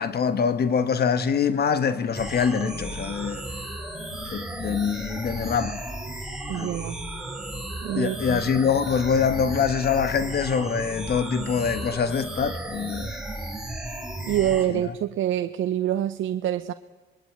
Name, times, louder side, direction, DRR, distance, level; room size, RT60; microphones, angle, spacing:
voice 1, 0.0-3.4 4.3-5.8 6.5-6.7 8.0-13.2 14.8-14.9, left 6 dB, 55° left, 1.4 m, -24 dB
sound 1, 2.1-14.7, right 1 dB, ahead, 4.4 m, -34 dB
voice 2, 6.5-7.0 7.8-8.4 14.2-16.7, right 11 dB, 75° right, 0.8 m, -26 dB
26.5 x 21.5 x 9.4 m
cardioid pair, 90°, 20 cm